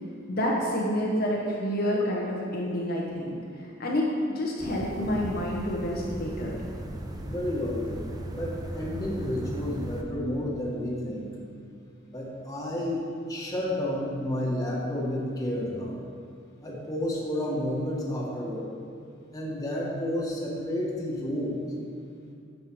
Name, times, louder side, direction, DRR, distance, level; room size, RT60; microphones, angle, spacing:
voice 1, 0.3-3.3 3.6-6.5, equal, 50° left, -3 dB, 1.1 m, -28 dB
sound 1, 4.6-10.0, right 1 dB, 20° right, 0.7 m, -37 dB
voice 2, 7.3-8.0 8.4-11.3 12.1-16.0 16.6-18.7 19.3-21.6, left 1 dB, 20° left, -5 dB, 1.7 m, -31 dB
9.6 x 7.7 x 4.8 m, 2.3 s
head